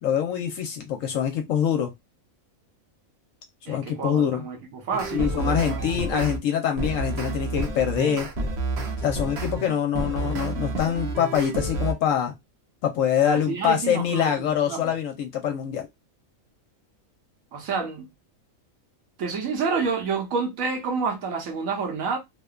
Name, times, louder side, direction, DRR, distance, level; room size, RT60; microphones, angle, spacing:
voice 1, 0.0-1.9 3.7-4.5 5.1-8.3 9.0-12.3 12.8-15.9, left 9 dB, 70° left, 0.9 m, -24 dB
voice 2, 3.7-5.8 6.1-6.3 13.2-14.9 17.5-18.1 19.2-22.2, right 5 dB, 75° right, 1.2 m, -29 dB
sound 1, 4.9-6.4 6.8-11.9, right 2 dB, 55° right, 0.9 m, -29 dB
2.9 x 2.1 x 2.3 m
omnidirectional pair, 1.5 m